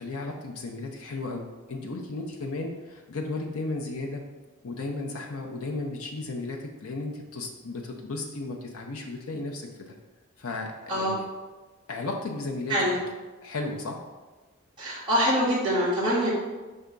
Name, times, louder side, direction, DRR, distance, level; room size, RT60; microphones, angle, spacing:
voice 1, 0.0-4.2 4.6-9.9 10.4-11.3 11.9-12.9 13.4-14.0, left 2 dB, 80° left, 1 dB, 0.7 m, -34 dB
voice 2, 12.7-13.0 14.8-16.3, equal, 25° right, -9 dB, 1.7 m, -24 dB
5.5 x 3.5 x 5.2 m, 1.2 s
head